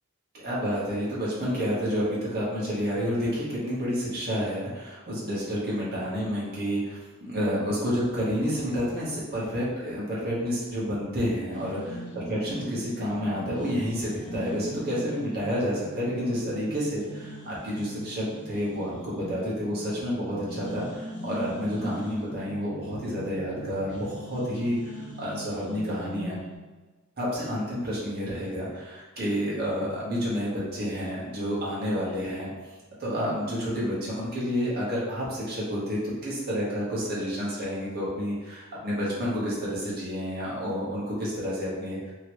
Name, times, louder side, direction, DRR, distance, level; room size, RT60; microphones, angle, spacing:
voice 1, 0.3-26.4 27.2-32.5 33.0-42.1, equal, 50° right, -7 dB, 1.1 m, -30 dB
sound 1, 11.5-26.6, right 1 dB, 40° left, 0.7 m, -40 dB
2.9 x 2.8 x 3.0 m, 1.2 s
head